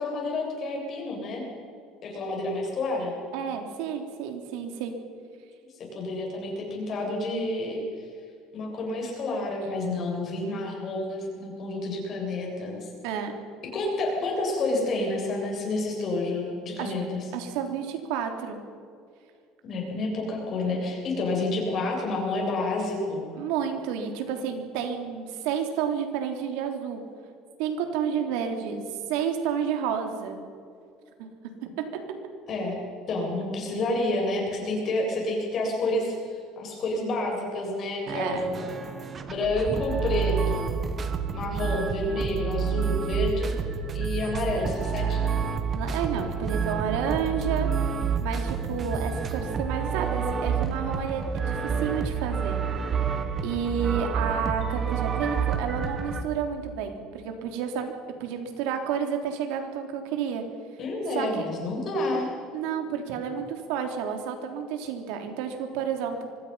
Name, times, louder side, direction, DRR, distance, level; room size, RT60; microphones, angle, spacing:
voice 1, 0.0-1.4 2.0-3.1 5.9-7.8 8.5-12.9 13.7-17.3 19.6-23.2 32.5-32.8 33.1-36.1 36.6-38.7 39.3-40.7 41.3-43.5 43.9-45.3 60.8-62.3, left 2 dB, 40° left, 0 dB, 7.6 m, -29 dB
voice 2, 3.3-4.9 13.0-13.3 16.8-16.9 17.3-18.6 23.3-27.0 27.6-28.8 29.1-30.4 31.2-31.3 31.8-32.0 38.1-38.4 45.7-47.7 48.2-52.6 53.4-57.9 58.2-60.4 61.1-61.5 62.5-66.3, right 7 dB, 80° right, 5 dB, 3.5 m, -30 dB
sound 1, 38.1-56.2, right 6 dB, 30° right, 1.9 m, -29 dB
25.0 x 20.0 x 5.8 m, 2.3 s
cardioid pair, 140°, 0 cm